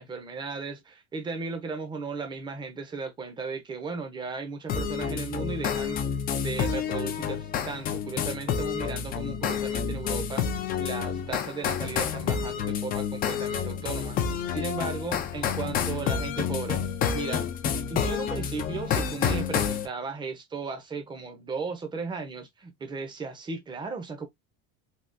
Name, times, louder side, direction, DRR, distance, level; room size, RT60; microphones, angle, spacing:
voice 1, 0.0-6.0 6.3-14.2 14.5-16.8 17.1-17.5 17.9-24.3, right 4 dB, 15° right, 0.6 m, -36 dB
sound 1, 4.7-19.9, left 7 dB, 30° left, 0.4 m, -29 dB
3.5 x 2.3 x 2.5 m
cardioid pair, 165°, 33 cm